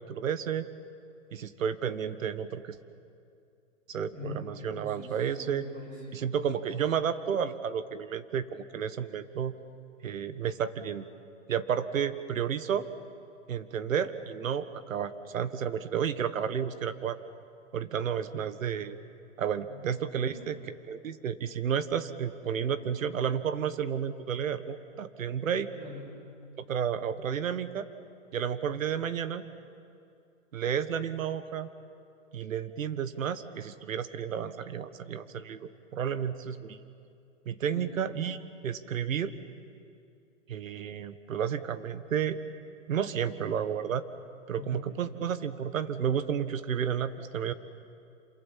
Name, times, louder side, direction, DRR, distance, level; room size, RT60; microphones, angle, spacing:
voice 1, 0.1-0.7 1.3-2.6 3.9-5.6 6.1-9.5 10.0-11.1 11.5-12.9 13.5-17.2 17.7-19.0 19.4-25.7 26.6-27.9 28.3-29.4 30.5-31.7 32.3-36.8 37.4-38.4 38.6-39.3 40.5-42.4 42.9-44.0 44.5-47.5, right 8 dB, 85° right, 12 dB, 1.6 m, -31 dB
voice 2, 4.1-6.3 19.7-20.5 22.8-23.0 25.8-26.1 37.7-37.9 44.5-44.9, left 3 dB, 20° right, 0 dB, 8.0 m, -44 dB
27.5 x 27.5 x 7.5 m, 2.5 s
hypercardioid pair, 160°, 39 cm